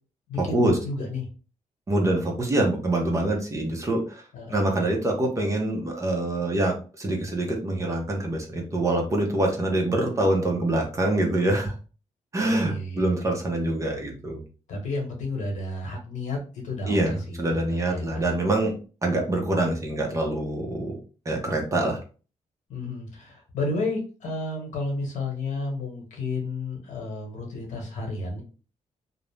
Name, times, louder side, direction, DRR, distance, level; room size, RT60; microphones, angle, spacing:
voice 1, 0.3-1.3 4.3-4.9 12.5-13.1 14.7-18.3 22.7-28.4, left 2 dB, 75° left, 0 dB, 1.0 m, -32 dB
voice 2, 1.9-4.2 4.5-11.7 12.3-14.4 16.9-18.7 19.0-21.0 21.2-22.0, right 1 dB, 25° right, 1 dB, 0.7 m, -25 dB
2.6 x 2.0 x 3.1 m, 0.36 s
cardioid pair, 135°, 13 cm